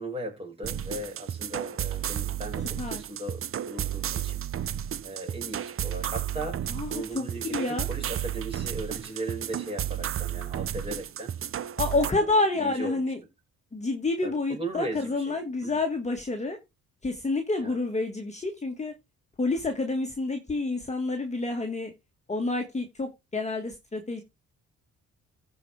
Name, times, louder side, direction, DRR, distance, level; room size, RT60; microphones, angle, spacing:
voice 1, 0.0-11.3 12.0-13.1 14.2-15.8 17.6-17.8, right 2 dB, 20° right, 5.4 m, -38 dB
sound 1, 0.6-12.1, right 10 dB, 45° right, 0.7 m, -33 dB
voice 2, 6.7-7.9 11.8-13.2 13.7-16.6 17.0-18.9 19.4-21.9 22.3-24.2, left 2 dB, 20° left, 1.8 m, -28 dB
15.0 x 5.0 x 3.4 m
cardioid pair, 90°, 30 cm